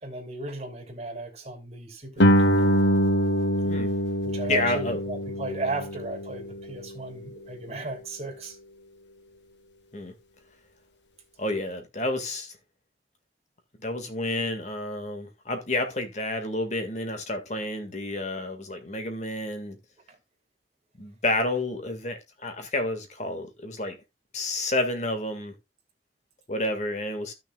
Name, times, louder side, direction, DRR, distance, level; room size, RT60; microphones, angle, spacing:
voice 1, 0.0-2.8 4.2-8.6 20.1-20.2, right 2 dB, 35° right, 3.1 m, -35 dB
Guitar, 2.2-7.6, equal, 90° left, 1.4 m, -24 dB
voice 2, 3.6-3.9 4.5-5.0 9.9-10.1 11.4-12.5 13.8-19.8 21.0-24.0 24.3-25.5 26.5-27.3, left 2 dB, 40° left, 1.9 m, -30 dB
15.0 x 6.4 x 2.4 m
head